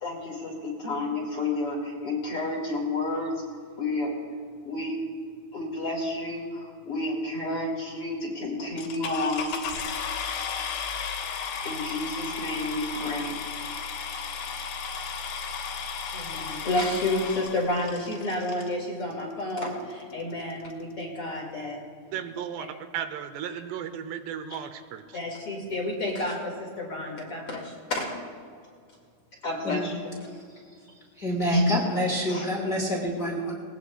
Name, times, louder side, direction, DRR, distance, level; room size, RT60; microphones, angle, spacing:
voice 1, 0.0-3.4 3.8-4.1 4.6-5.0 5.5-9.9 11.6-13.9 16.1-21.8 22.6-22.7 25.1-28.1 29.4-30.2 31.5-31.7 32.3-32.4, left 2 dB, 45° left, 2.2 m, -30 dB
Engine Start, 8.8-18.7 19.5-19.6 20.1-20.2 20.4-20.7, left 6 dB, 65° left, 2.6 m, -34 dB
voice 2, 22.1-22.7 22.9-25.0, right 9 dB, 80° right, 2.8 m, -34 dB
voice 3, 31.1-33.5, equal, 30° left, 1.7 m, -28 dB
19.5 x 19.5 x 2.3 m
omnidirectional pair, 4.9 m